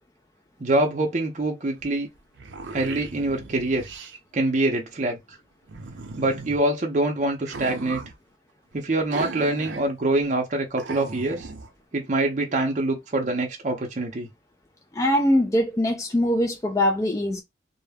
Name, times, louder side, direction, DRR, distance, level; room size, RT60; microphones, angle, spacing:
voice 1, 0.6-2.1 2.7-3.9 4.3-5.2 6.2-8.0 8.7-11.5 11.9-14.3, right 2 dB, 40° right, 0.6 m, -25 dB
sound 1, 1.8-1.9 2.2-4.2 5.7-6.6 7.4-8.1 9.1-9.9 10.2-10.3 10.8-11.7, right 3 dB, 85° right, 0.6 m, -37 dB
voice 2, 14.9-17.4, left 1 dB, 20° left, 0.3 m, -22 dB
2.2 x 2.0 x 3.2 m
head